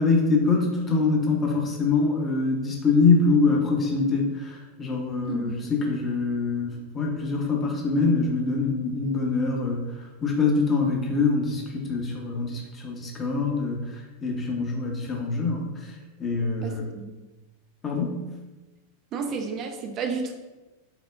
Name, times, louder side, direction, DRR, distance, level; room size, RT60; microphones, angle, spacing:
voice 1, 0.0-16.9 17.8-18.2, left 4 dB, 20° left, 0 dB, 0.7 m, -24 dB
voice 2, 5.3-5.7 16.6-17.2 19.1-20.3, right 5 dB, 35° right, 4 dB, 0.4 m, -32 dB
4.7 x 2.1 x 2.3 m, 1.2 s
figure-of-eight pair, 90°, 0 cm